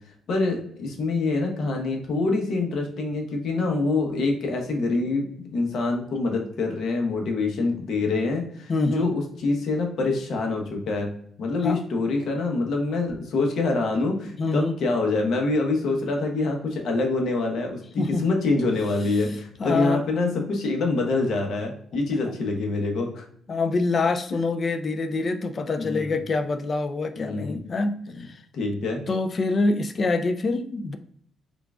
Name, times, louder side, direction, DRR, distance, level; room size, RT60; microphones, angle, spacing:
voice 1, 0.3-5.2 5.5-11.1 11.4-23.2 25.8-26.1 27.2-27.6 28.1-28.3 28.5-29.0, left 3 dB, 65° left, 2 dB, 1.0 m, -25 dB
voice 2, 8.7-9.1 11.6-11.8 14.4-14.7 18.0-18.2 19.6-20.0 22.2-22.3 23.5-27.9 28.2-28.4 29.1-31.0, left 3 dB, 40° left, 9 dB, 0.4 m, -25 dB
3.7 x 3.5 x 2.3 m, 0.63 s
cardioid pair, 90°, 0 cm